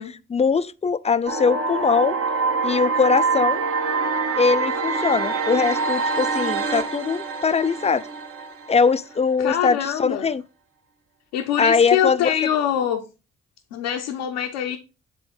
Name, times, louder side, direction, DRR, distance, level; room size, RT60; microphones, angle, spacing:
voice 1, 0.0-2.2 2.6-3.6 4.4-8.1 8.7-10.4 11.6-12.3, left 5 dB, 20° left, 0.5 m, -21 dB
sound 1, 1.3-9.2, right 4 dB, 45° right, 1.4 m, -25 dB
voice 2, 9.4-10.3 11.3-13.0 13.7-14.8, left 10 dB, 80° left, 0.8 m, -24 dB
8.1 x 3.5 x 5.0 m
hypercardioid pair, 45°, 30 cm